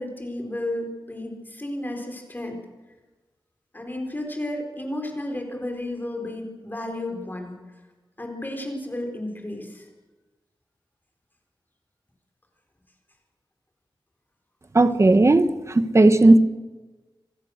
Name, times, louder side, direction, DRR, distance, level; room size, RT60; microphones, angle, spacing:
voice 1, 0.0-2.6 3.7-7.5 8.2-9.9, left 1 dB, 20° left, 2 dB, 4.3 m, -32 dB
voice 2, 14.7-16.4, right 2 dB, 35° right, 12 dB, 1.1 m, -16 dB
26.5 x 16.0 x 6.6 m, 1.2 s
wide cardioid pair, 100°, 9 cm